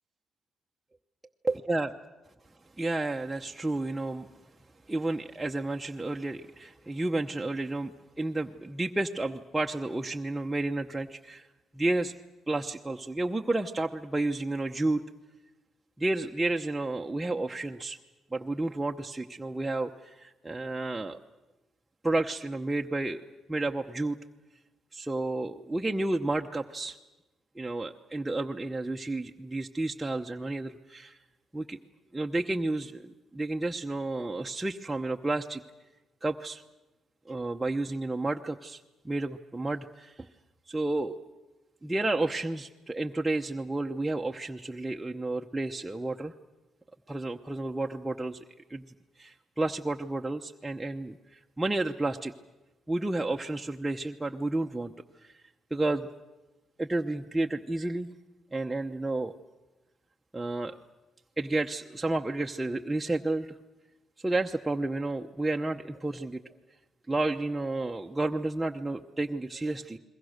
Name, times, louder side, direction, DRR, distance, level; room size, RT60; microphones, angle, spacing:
voice 1, 1.4-1.9 2.8-4.3 4.9-11.5 11.7-12.1 12.5-15.0 16.0-18.0 18.3-21.2 22.0-23.2 23.5-24.2 24.9-27.0 27.6-31.2 31.5-31.8 32.1-35.6 36.2-36.6 37.3-40.3 40.7-41.2 41.8-46.3 47.1-48.4 48.7-48.8 49.2-52.3 52.9-54.9 55.2-55.3 55.7-56.1 56.8-58.1 58.5-59.3 60.3-60.7 61.4-63.5 64.2-66.4 67.1-70.0, right 2 dB, 10° right, 2 dB, 0.9 m, -31 dB
29.5 x 22.0 x 6.6 m, 1.1 s
cardioid pair, 90°, 0 cm